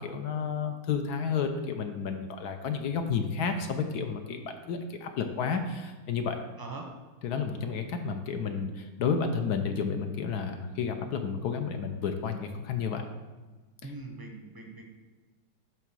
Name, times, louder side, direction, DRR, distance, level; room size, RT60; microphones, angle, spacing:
voice 1, 0.0-6.4 7.2-13.0, left 6 dB, 65° left, 6 dB, 1.1 m, -31 dB
voice 2, 13.8-14.8, right 3 dB, 25° right, 1 dB, 0.5 m, -41 dB
9.0 x 3.6 x 6.1 m, 1.3 s
omnidirectional pair, 1.9 m